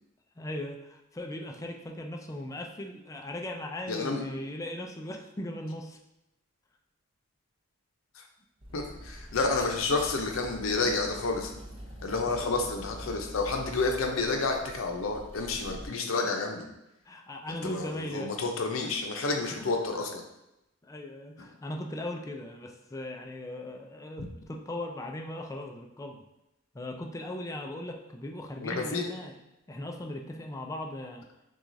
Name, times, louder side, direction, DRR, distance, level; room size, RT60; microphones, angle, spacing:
voice 1, 0.4-6.0 9.5-9.7 12.2-12.7 17.1-18.3 19.5-19.7 20.8-26.2 26.7-29.3 29.7-31.2, left 1 dB, 15° left, 2 dB, 0.4 m, -38 dB
voice 2, 3.9-4.2 8.2-8.3 8.7-11.5 12.0-16.7 17.6-20.2 28.6-29.1, left 3 dB, 75° left, 3 dB, 0.6 m, -30 dB
sound 1, 8.6-15.9, equal, 30° right, 0.7 m, -45 dB
6.0 x 2.4 x 2.6 m, 0.89 s
head